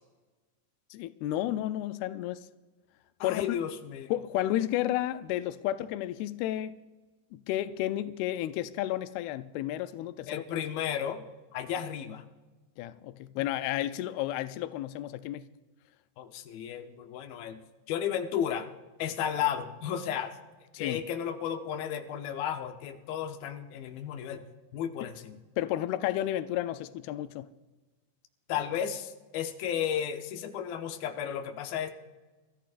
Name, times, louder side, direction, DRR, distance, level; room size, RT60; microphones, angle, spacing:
voice 1, 0.9-2.5 3.2-3.4 4.1-6.8 7.3-10.4 12.8-15.5 20.7-21.0 25.6-27.5, left 13 dB, 90° left, 2.2 m, -32 dB
voice 2, 3.2-4.1 10.3-11.2 11.5-12.2 16.2-17.6 17.9-18.7 19.0-20.4 20.8-24.5 24.7-25.4 28.5-31.9, left 9 dB, 70° left, 2.4 m, -33 dB
29.0 x 14.5 x 2.5 m
omnidirectional pair, 5.0 m